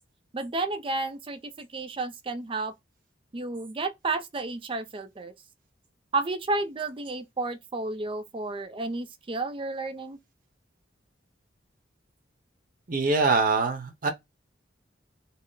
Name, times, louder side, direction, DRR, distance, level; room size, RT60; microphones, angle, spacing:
voice 1, 0.3-2.7 3.3-5.3 6.1-10.2, right 3 dB, 30° right, 0.5 m, -31 dB
voice 2, 12.9-14.1, right 3 dB, 45° right, 0.9 m, -24 dB
4.2 x 2.0 x 3.9 m
head